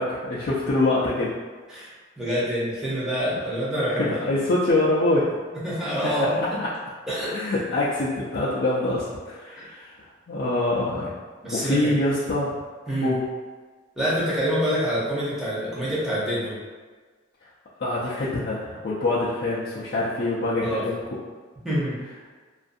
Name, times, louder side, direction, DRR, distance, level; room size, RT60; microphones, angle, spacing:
voice 1, 0.0-1.3 4.0-5.4 6.4-6.5 7.3-9.9 10.3-11.1 11.5-12.5 13.0-13.2 17.8-21.0, left 2 dB, 55° left, -9 dB, 0.4 m, -24 dB
voice 2, 1.7-4.1 5.6-6.6 7.1-7.3 9.6-9.7 11.4-11.9 12.9-13.1 14.0-16.6 20.6-20.8 21.6-22.0, equal, 5° right, -9 dB, 0.7 m, -26 dB
2.5 x 2.3 x 2.6 m, 1.4 s
head